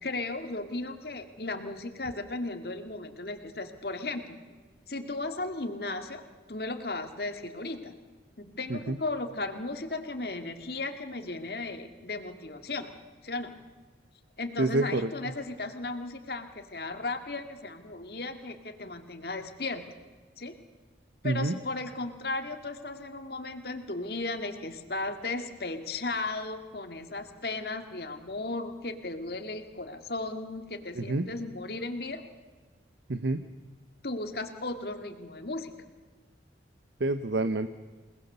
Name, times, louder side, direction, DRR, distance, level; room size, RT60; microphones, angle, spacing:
voice 1, 0.0-4.6 4.9-6.2 6.5-7.9 8.4-12.9 13.2-13.6 14.4-19.8 20.4-20.5 21.2-32.2 34.0-35.7, left 2 dB, 60° left, 6 dB, 2.0 m, -35 dB
voice 2, 14.6-15.1 21.2-21.5 31.0-31.3 33.1-33.4 37.0-37.7, right 2 dB, 75° right, 11 dB, 0.8 m, -28 dB
28.0 x 19.0 x 6.8 m, 1.4 s
head